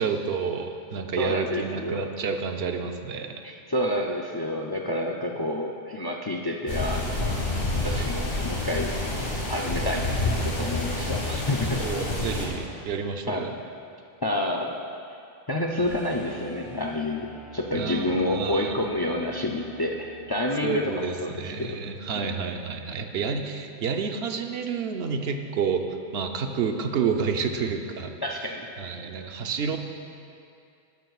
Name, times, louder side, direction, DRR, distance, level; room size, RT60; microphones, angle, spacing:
voice 1, 0.0-3.4 11.8-13.5 17.7-18.7 20.6-25.9 26.1-28.1 28.8-29.8, right 6 dB, 75° right, 5 dB, 0.9 m, -29 dB
voice 2, 1.2-2.1 3.4-7.4 7.7-8.9 9.5-11.8 13.3-13.4 14.2-14.7 15.5-21.8 22.1-22.2 28.2-28.7, left 1 dB, 35° left, 1 dB, 0.4 m, -29 dB
sound 1, 6.7-12.5, left 2 dB, 55° left, 1.9 m, -28 dB
sound 2, 15.8-21.7 24.2-24.3, right 3 dB, 10° right, 1.4 m, -47 dB
12.0 x 12.0 x 2.4 m, 2.5 s
omnidirectional pair, 1.1 m